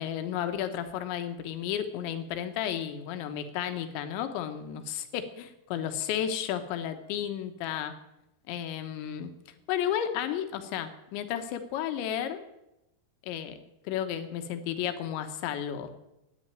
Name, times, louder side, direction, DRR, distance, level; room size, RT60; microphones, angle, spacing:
voice 1, 0.0-7.9 8.5-9.3 9.7-12.4 13.2-13.6 13.9-15.9, left 10 dB, 80° left, 8 dB, 3.5 m, -33 dB
13.5 x 9.9 x 9.1 m, 0.89 s
omnidirectional pair, 5.2 m